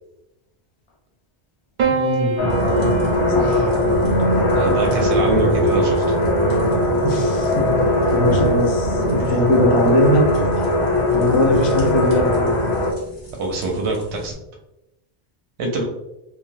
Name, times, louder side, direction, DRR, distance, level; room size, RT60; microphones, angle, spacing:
voice 1, 1.8-2.4 3.3-3.7 7.0-7.8 8.1-10.2 11.1-12.6, left 1 dB, 45° left, 0 dB, 0.3 m, -20 dB
Piano, 1.8-6.3 7.5-8.1, right 4 dB, 55° right, 0.6 m, -28 dB
sound 1, 2.4-12.9, left 1 dB, 85° left, 0.9 m, -19 dB
sound 2, 2.5-14.3, equal, 70° left, 1.3 m, -39 dB
voice 2, 4.5-6.2 8.3-8.4 9.2-9.4 13.4-14.3 15.6-15.8, right 2 dB, 90° right, 0 dB, 0.9 m, -24 dB
3.2 x 2.2 x 2.6 m, 0.92 s
omnidirectional pair, 1.1 m